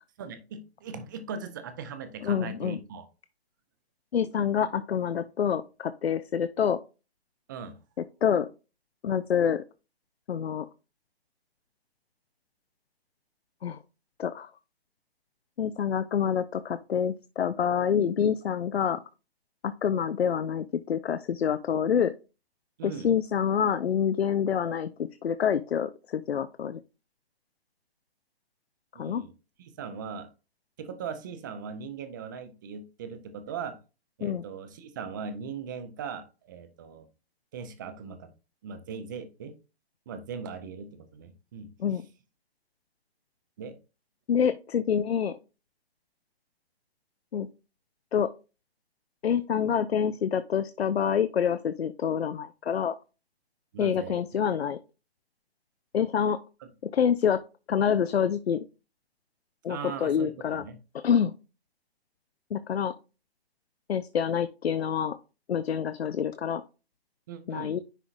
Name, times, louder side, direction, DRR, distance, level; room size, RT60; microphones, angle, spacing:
voice 1, 0.2-3.0 7.5-7.8 22.8-23.1 28.9-29.3 29.6-30.3 30.8-33.8 34.2-37.1 37.5-38.3 38.6-39.5 40.1-41.7 43.6-43.8 53.7-54.2 59.7-60.3 60.6-60.8 67.3-67.8, right 6 dB, 20° right, 10 dB, 0.5 m, -39 dB
voice 2, 2.2-2.8 4.1-6.8 8.2-8.5 9.0-9.6 10.3-10.7 13.6-13.8 14.2-14.5 15.6-19.0 19.6-22.1 22.8-26.8 29.0-29.2 34.2-34.4 41.8-42.0 44.3-45.4 47.3-47.5 48.1-48.3 49.2-52.9 53.8-54.8 55.9-56.4 56.9-57.4 57.7-58.6 59.6-60.6 61.0-61.3 62.5-62.9 63.9-65.2 65.5-66.6 67.5-67.8, left 8 dB, 75° left, 12 dB, 0.5 m, -27 dB
9.9 x 3.8 x 2.5 m, 0.31 s
figure-of-eight pair, 140°, 32 cm